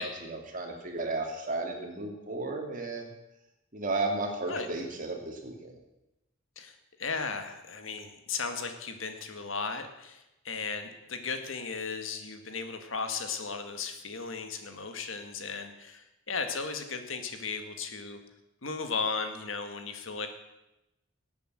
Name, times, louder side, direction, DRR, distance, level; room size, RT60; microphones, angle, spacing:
voice 1, 0.0-3.1 3.7-5.7, right 2 dB, 40° right, 2 dB, 2.6 m, -34 dB
voice 2, 6.6-18.2 18.6-20.3, left 4 dB, 75° left, 7 dB, 1.8 m, -36 dB
18.0 x 8.5 x 7.5 m, 0.95 s
head